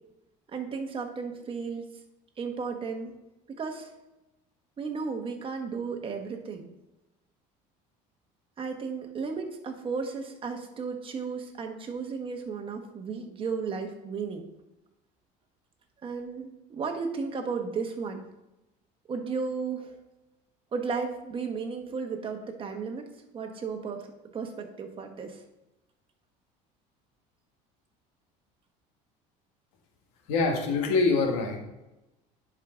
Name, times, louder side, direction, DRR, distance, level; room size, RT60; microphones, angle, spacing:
voice 1, 0.5-1.9 2.4-3.1 3.5-3.9 4.8-6.7 8.6-14.5 16.0-18.3 19.1-19.9 20.7-23.1 23.3-25.4, right 5 dB, 30° right, 4 dB, 1.3 m, -34 dB
voice 2, 30.3-31.6, left 4 dB, 90° left, 3 dB, 1.6 m, -24 dB
10.5 x 4.8 x 3.8 m, 0.98 s
cardioid pair, 115°, 17 cm